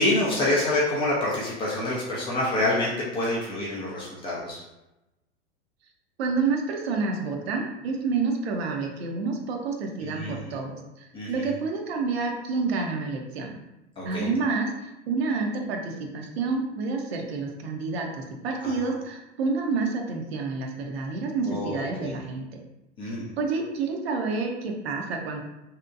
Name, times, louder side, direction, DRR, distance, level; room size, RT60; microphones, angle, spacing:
voice 1, 0.0-4.6 10.0-10.6 11.1-11.5 14.0-14.3 18.6-18.7 21.5-22.1 23.0-23.3, left 1 dB, 15° left, -5 dB, 0.3 m, -27 dB
voice 2, 6.2-13.6 14.0-22.6 23.4-25.4, right 4 dB, 60° right, 2 dB, 0.6 m, -29 dB
2.7 x 2.1 x 2.4 m, 0.96 s
figure-of-eight pair, 95°, 36 cm